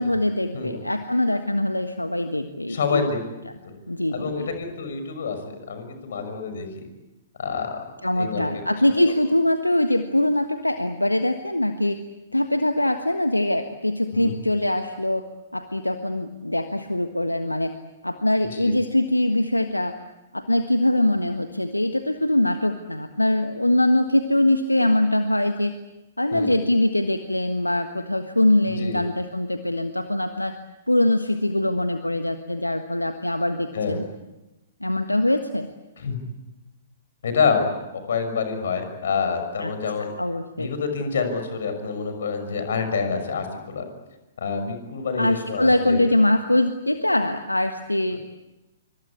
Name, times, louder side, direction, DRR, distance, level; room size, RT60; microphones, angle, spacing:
voice 1, 0.0-3.1 3.9-4.5 8.0-12.0 12.3-15.2 15.5-17.7 18.0-19.9 20.3-25.7 26.2-30.6 30.9-34.0 34.8-35.7 39.6-39.7 40.2-40.7 45.2-48.2, left 1 dB, 85° left, 7 dB, 1.4 m, -23 dB
voice 2, 2.7-3.2 3.6-3.7 4.1-6.9 7.4-7.8 8.2-8.4 14.1-14.4 18.5-18.7 26.3-26.5 28.8-29.0 33.7-34.0 36.0-36.2 37.2-40.1 40.6-43.8 44.4-46.0 48.1-48.2, left 5 dB, 55° left, 7 dB, 6.2 m, -27 dB
26.5 x 25.0 x 8.5 m, 1.0 s
figure-of-eight pair, 115°, 0 cm